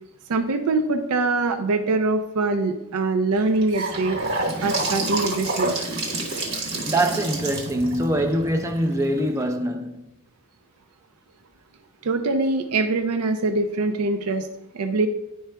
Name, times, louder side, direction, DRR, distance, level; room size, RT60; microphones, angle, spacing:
voice 1, 0.3-4.2 4.6-5.8 12.0-14.5 14.7-15.1, right 3 dB, 85° right, 0.5 m, -23 dB
Gurgling / Sink (filling or washing) / Bathtub (filling or washing), 3.3-9.4, right 2 dB, 65° right, 1.1 m, -28 dB
voice 2, 6.9-10.0, right 1 dB, 15° right, 0.4 m, -23 dB
10.5 x 4.6 x 2.2 m
head